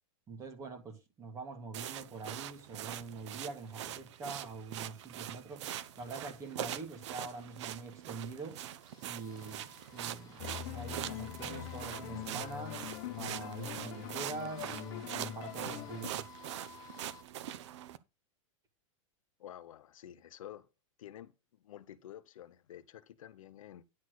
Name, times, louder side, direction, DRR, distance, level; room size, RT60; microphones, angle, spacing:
voice 1, 0.3-5.6 6.0-8.6 9.0-12.8 13.2-16.3, right 4 dB, 20° right, 2.2 m, -44 dB
sound 1, 1.7-18.0, right 11 dB, 60° right, 0.8 m, -43 dB
sound 2, 5.7-17.2, left 9 dB, 25° left, 1.4 m, -57 dB
sound 3, 10.4-16.1, left 13 dB, 40° left, 1.1 m, -43 dB
voice 2, 19.4-20.7 21.0-21.3 21.6-23.8, left 11 dB, 85° left, 0.9 m, -50 dB
10.5 x 4.3 x 6.5 m
supercardioid pair, 165°, 17 cm